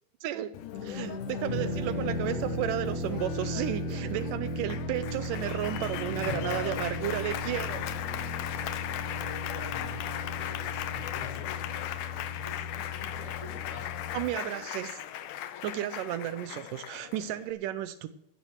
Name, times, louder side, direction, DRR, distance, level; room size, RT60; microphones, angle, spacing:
voice 1, 0.2-0.5 0.8-7.8 14.1-15.0 15.6-18.1, right 12 dB, 90° right, 11 dB, 1.9 m, -33 dB
Applause, 0.5-17.5, left 10 dB, 80° left, 1.9 m, -37 dB
sound 1, 1.5-14.2, left 1 dB, 70° right, 5.6 m, -36 dB
voice 2, 9.5-10.1 10.7-11.5 12.3-13.9, right 1 dB, 10° right, -1 dB, 4.9 m, -48 dB
17.0 x 13.5 x 3.1 m, 0.79 s
omnidirectional pair, 4.5 m